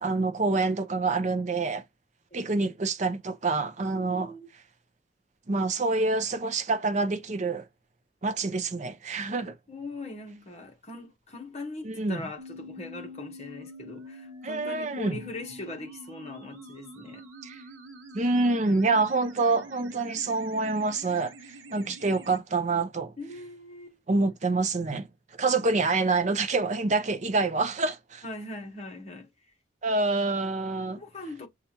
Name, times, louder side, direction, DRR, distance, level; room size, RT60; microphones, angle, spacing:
voice 1, 0.0-1.8 2.3-4.3 5.5-7.6 8.2-9.5 11.8-12.3 14.4-15.2 17.4-17.6 18.1-23.1 24.1-25.0 25.4-28.2 29.8-31.0, right 3 dB, 35° right, 0.5 m, -27 dB
voice 2, 3.9-4.5 9.4-17.3 21.9-22.0 23.2-24.0 24.9-25.0 28.2-29.3 31.0-31.5, left 2 dB, 35° left, 1.1 m, -41 dB
sound 1, 12.4-22.4, equal, 85° right, 1.0 m, -46 dB
6.7 x 2.4 x 2.8 m
head